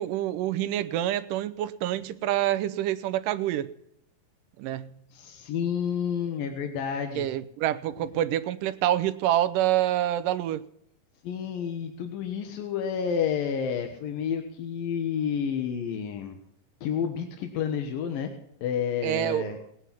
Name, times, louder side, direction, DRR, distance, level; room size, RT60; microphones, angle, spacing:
voice 1, 0.0-3.7 4.6-5.0 7.2-10.6 19.0-19.6, right 12 dB, 80° right, 12 dB, 2.4 m, -27 dB
voice 2, 5.1-7.3 11.2-16.4 16.8-18.3 18.6-19.6, left 7 dB, 90° left, 5 dB, 3.1 m, -30 dB
19.0 x 9.6 x 5.9 m, 0.73 s
omnidirectional pair, 3.9 m